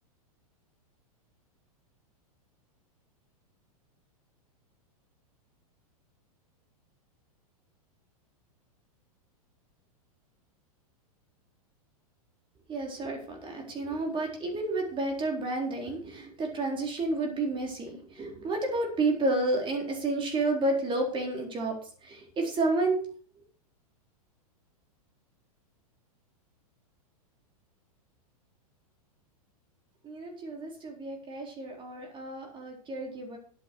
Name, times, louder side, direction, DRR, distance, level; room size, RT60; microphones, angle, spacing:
voice 1, 12.7-23.0 30.0-33.4, right 2 dB, 25° right, 1 dB, 4.1 m, -31 dB
10.5 x 9.4 x 4.7 m, 0.43 s
hypercardioid pair, 110°, 19 cm